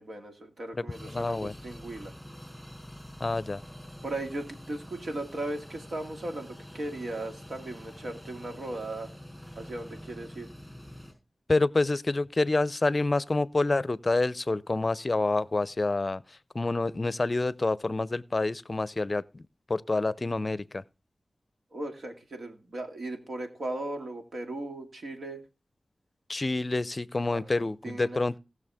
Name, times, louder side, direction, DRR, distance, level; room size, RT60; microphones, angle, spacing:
voice 1, 0.0-2.1 4.0-9.1 9.6-10.5 21.7-25.4 27.3-28.2, right 2 dB, 80° right, 2.2 m, -37 dB
voice 2, 0.8-1.5 3.2-3.6 11.5-16.2 16.5-19.2 19.7-20.8 26.3-28.4, left 2 dB, 45° left, 0.5 m, -27 dB
sound 1, 0.9-11.1, equal, 5° right, 5.2 m, -46 dB
18.5 x 6.3 x 3.5 m
cardioid pair, 55°, 0 cm